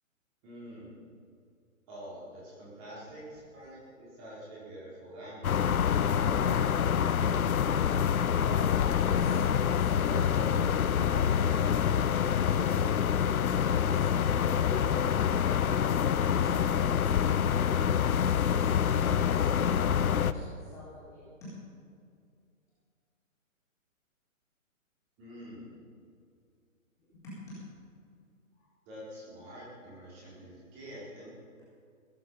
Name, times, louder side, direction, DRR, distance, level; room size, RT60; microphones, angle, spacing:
voice 1, 0.4-1.0 1.9-5.7 6.2-7.1 25.2-25.7 28.9-31.3, equal, 20° right, -7 dB, 4.4 m, -46 dB
sound 1, 5.4-20.3, left 8 dB, 85° left, 0.8 m, -26 dB
voice 2, 8.2-15.5 16.0-18.7 19.0-21.5 27.0-27.6 28.5-28.7, left 1 dB, 5° left, -12 dB, 4.3 m, -46 dB
19.0 x 11.0 x 5.6 m, 2.3 s
hypercardioid pair, 170°, 41 cm